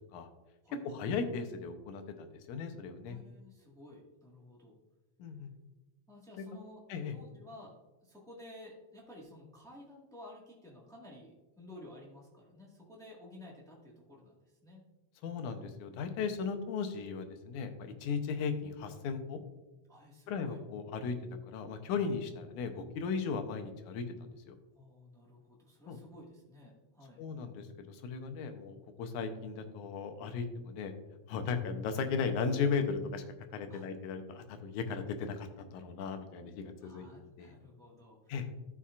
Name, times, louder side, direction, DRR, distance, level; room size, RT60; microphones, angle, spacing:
voice 1, 0.8-3.2 5.2-5.5 6.4-6.5 6.9-7.2 15.2-19.4 20.3-21.2 21.5-24.6 25.9-26.0 27.2-30.9 31.3-33.2 33.5-37.1 37.4-37.5 38.3-38.5, left 5 dB, 80° left, 7 dB, 2.2 m, -36 dB
voice 2, 3.0-4.8 6.1-6.8 7.1-7.7 8.0-14.8 19.9-20.6 24.7-27.2 33.7-33.9 36.8-38.3, left 1 dB, 5° left, -3 dB, 0.3 m, -53 dB
13.0 x 5.7 x 2.5 m, 1.1 s
omnidirectional pair, 3.5 m